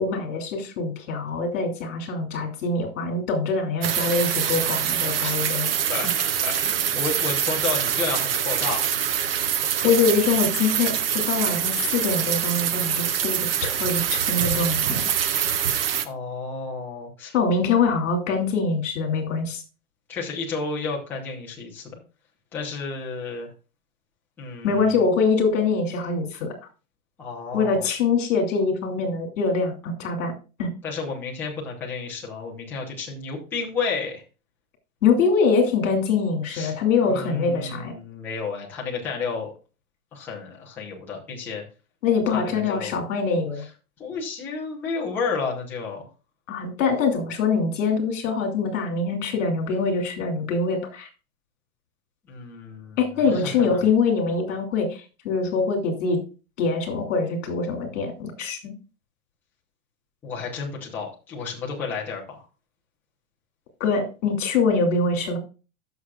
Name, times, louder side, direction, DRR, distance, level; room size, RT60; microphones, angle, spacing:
voice 1, 0.0-5.8 9.8-15.0 17.3-19.6 24.6-26.6 27.5-29.7 30.0-30.3 30.6-30.7 35.0-37.9 42.0-43.6 46.5-51.1 53.0-56.2 56.6-58.7 63.8-65.4, left 4 dB, 55° left, 4 dB, 2.9 m, -24 dB
sound 1, 3.8-16.1, right 9 dB, 40° right, 0.6 m, -25 dB
voice 2, 6.4-8.9 16.0-17.3 20.1-22.0 22.5-23.5 24.4-25.0 27.2-27.8 30.8-34.2 36.5-36.7 37.1-39.5 40.1-41.6 42.3-43.0 44.0-46.1 52.3-53.8 60.2-62.4, left 4 dB, 5° left, -4 dB, 0.7 m, -31 dB
15.5 x 6.3 x 2.4 m, 0.33 s
supercardioid pair, 175°, 44 cm